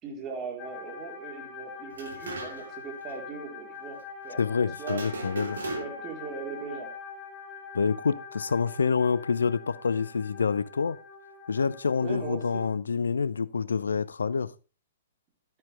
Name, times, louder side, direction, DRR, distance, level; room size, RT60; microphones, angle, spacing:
voice 1, 0.0-5.0 5.6-6.9 12.0-12.5, right 5 dB, 25° right, 3.8 m, -39 dB
sound 1, 0.6-12.7, left 5 dB, 30° left, 2.8 m, -44 dB
sound 2, 1.9-2.8 3.1-3.2 4.8-6.2, right 2 dB, 65° right, 2.9 m, -37 dB
voice 2, 4.4-5.6 7.7-11.0 11.5-14.5, left 5 dB, 70° left, 0.6 m, -27 dB
13.0 x 8.8 x 3.3 m
figure-of-eight pair, 115°, 0 cm